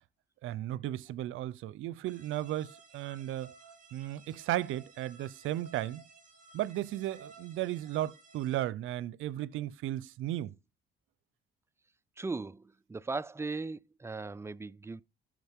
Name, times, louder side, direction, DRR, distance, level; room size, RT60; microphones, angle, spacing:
voice 1, 0.4-3.5 3.9-6.0 6.5-10.5, right 14 dB, 85° right, 0.6 m, -35 dB
sound 1, 2.0-8.6, right 3 dB, 40° right, 5.4 m, -56 dB
voice 2, 12.2-15.0, right 3 dB, 15° right, 0.4 m, -38 dB
14.0 x 5.1 x 3.6 m
cardioid pair, 90°, 20 cm